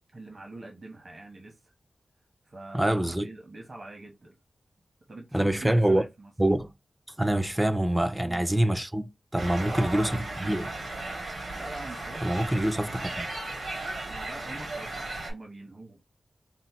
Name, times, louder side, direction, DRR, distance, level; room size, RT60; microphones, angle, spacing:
voice 1, 0.1-1.7 2.4-4.3 5.1-6.3 8.2-8.5 9.7-10.4 11.5-12.5 14.1-16.0, right 2 dB, 45° right, 1.1 m, -43 dB
voice 2, 2.7-3.3 5.3-6.0 6.4-6.7 7.2-10.1 10.4-10.7 12.2-13.3, right 1 dB, 10° right, 0.5 m, -25 dB
sound 1, 9.4-15.3, right 2 dB, 75° right, 2.7 m, -36 dB
4.1 x 2.1 x 4.3 m
wide cardioid pair, 130°, 0 cm